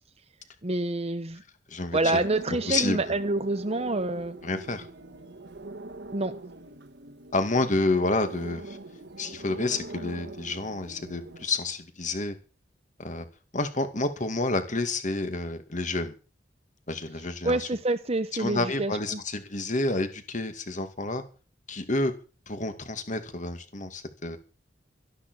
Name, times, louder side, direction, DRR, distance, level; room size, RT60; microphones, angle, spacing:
voice 1, 0.6-1.4 1.9-4.4 6.1-6.3 17.4-19.2, right 2 dB, 35° right, 8 dB, 1.0 m, -27 dB
voice 2, 1.7-2.2 2.7-3.0 4.4-4.9 7.3-8.8 9.2-12.3 13.0-13.3 13.5-16.1 16.9-17.7 18.4-21.2 21.7-22.1 22.5-24.4, left 2 dB, 45° left, 9 dB, 2.3 m, -29 dB
sound 1, 2.0-11.5, right 2 dB, 70° right, 1.5 m, -42 dB
13.0 x 12.0 x 6.3 m, 0.35 s
head